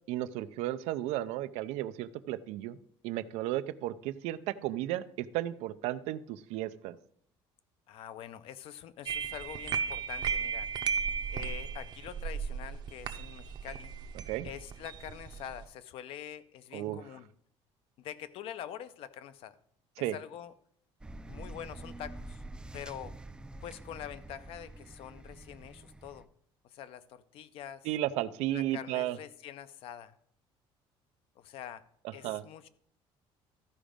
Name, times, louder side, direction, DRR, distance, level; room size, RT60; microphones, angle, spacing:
voice 1, 0.1-2.8 3.0-7.0 14.3-14.5 16.7-17.0 20.0-20.2 27.8-29.2 32.2-32.4, right 14 dB, 90° right, 14 dB, 0.5 m, -34 dB
voice 2, 7.9-10.7 11.3-13.9 14.4-17.3 18.0-19.5 20.0-20.5 21.3-22.4 22.7-23.1 23.6-26.3 26.7-27.9 28.5-30.1 31.4-31.8 32.1-32.7, left 10 dB, 60° left, 14 dB, 0.6 m, -45 dB
sound 1, 9.1-15.6, right 6 dB, 40° right, 0.7 m, -35 dB
sound 2, 21.0-26.3, right 2 dB, 10° right, 0.4 m, -47 dB
13.5 x 5.0 x 5.1 m, 0.64 s
cardioid pair, 160°, 11 cm